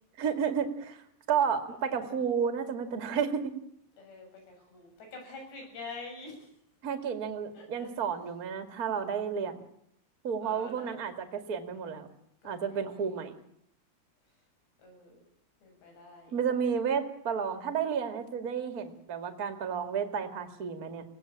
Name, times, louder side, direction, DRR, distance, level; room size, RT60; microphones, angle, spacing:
voice 1, 0.2-1.0 1.3-3.5 6.8-9.6 10.2-12.1 12.4-13.4 16.3-21.0, right 7 dB, 30° right, 7 dB, 1.8 m, -31 dB
voice 2, 1.7-2.1 4.0-6.5 7.5-8.2 10.4-10.9 12.4-13.2 14.8-15.2 15.6-16.3, left 3 dB, 85° left, 3 dB, 9.7 m, -47 dB
24.5 x 18.0 x 8.7 m, 0.72 s
omnidirectional pair, 4.8 m